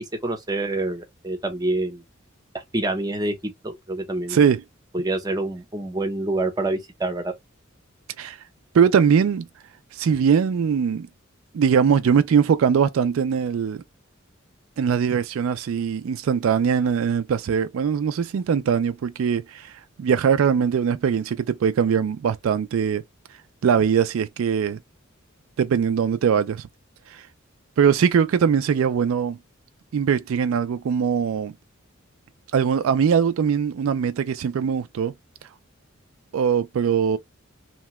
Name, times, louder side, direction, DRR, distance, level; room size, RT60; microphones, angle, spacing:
voice 1, 0.2-2.0 2.7-3.3 3.6-4.5 4.9-7.3, right 2 dB, 20° right, 0.8 m, -26 dB
voice 2, 4.3-4.6 8.2-8.4 8.7-9.5 9.9-11.1 11.5-13.8 14.8-23.0 23.6-24.8 25.6-26.7 27.1-27.2 27.8-29.4 29.9-31.5 32.5-35.1 36.3-37.2, right 7 dB, 80° right, 0.3 m, -21 dB
2.9 x 2.2 x 2.9 m
head